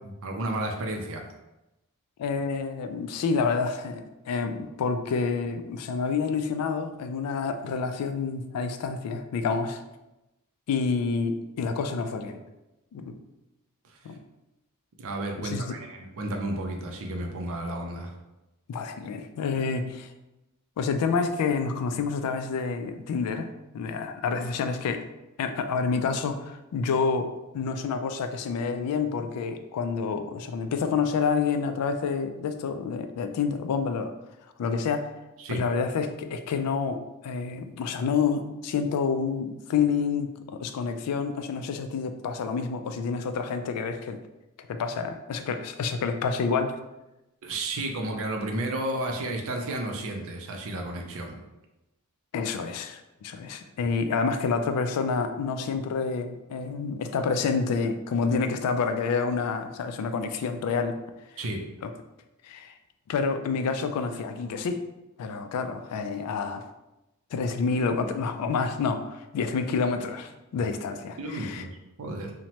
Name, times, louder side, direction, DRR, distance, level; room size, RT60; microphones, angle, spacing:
voice 1, 0.0-1.2 13.8-14.0 15.0-18.1 35.4-35.6 47.4-51.4 61.4-61.6 71.2-71.7 72.0-72.3, right 1 dB, 65° right, 3 dB, 0.5 m, -32 dB
voice 2, 2.2-9.8 10.7-12.4 12.9-13.2 14.0-14.1 15.4-15.7 18.7-20.1 20.8-25.0 25.4-34.1 34.6-35.1 35.5-44.2 44.7-46.8 52.3-60.9 61.8-61.9 62.4-62.7 63.1-64.8 65.2-66.6 67.3-71.6, left 5 dB, 80° left, 11 dB, 0.3 m, -28 dB
2.9 x 2.1 x 2.8 m, 0.97 s
head